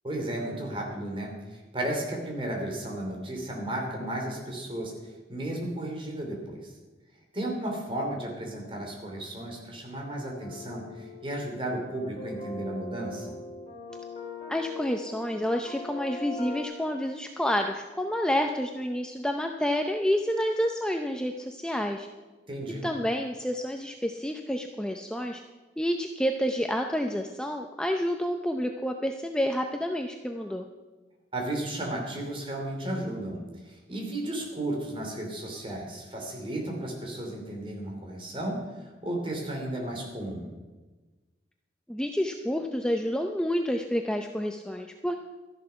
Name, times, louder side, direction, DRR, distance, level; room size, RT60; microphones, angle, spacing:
voice 1, 0.0-4.9 5.3-6.7 7.3-13.3 22.5-22.8 31.3-40.5, right 1 dB, 30° right, 1 dB, 3.0 m, -34 dB
sound 1, 10.4-16.6, left 3 dB, 35° left, 4.0 m, -40 dB
voice 2, 14.5-22.1 22.8-25.4 25.8-30.6 41.9-45.2, equal, 5° left, 4 dB, 0.6 m, -29 dB
13.0 x 11.0 x 5.8 m, 1.2 s
head